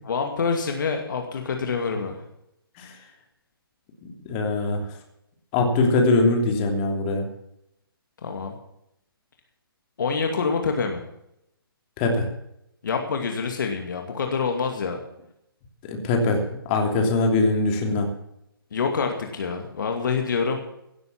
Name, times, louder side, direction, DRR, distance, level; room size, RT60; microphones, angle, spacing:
voice 1, 0.0-2.2 8.2-8.5 10.0-11.0 12.8-15.0 18.7-20.6, left 5 dB, 55° left, 4 dB, 2.4 m, -26 dB
voice 2, 4.3-4.8 5.5-7.3 12.0-12.3 15.9-16.4 16.7-18.1, left 2 dB, 25° left, 3 dB, 3.1 m, -22 dB
17.0 x 9.3 x 7.1 m, 0.79 s
figure-of-eight pair, 135°, 13 cm